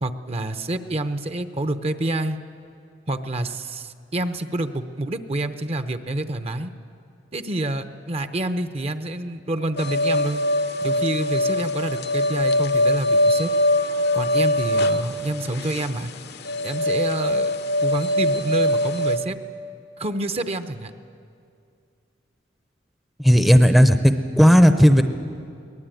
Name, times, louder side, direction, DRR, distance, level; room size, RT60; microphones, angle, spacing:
voice 1, 0.0-2.4 3.1-6.7 7.3-10.4 10.8-13.5 14.1-16.1 16.6-17.5 17.8-19.4 20.0-20.9, right 1 dB, 35° right, 9 dB, 0.8 m, -27 dB
sound 1, 9.8-19.2, left 1 dB, 60° left, 0.9 m, -22 dB
voice 2, 23.2-25.0, equal, ahead, 8 dB, 0.7 m, -14 dB
23.0 x 19.0 x 9.2 m, 2.4 s
head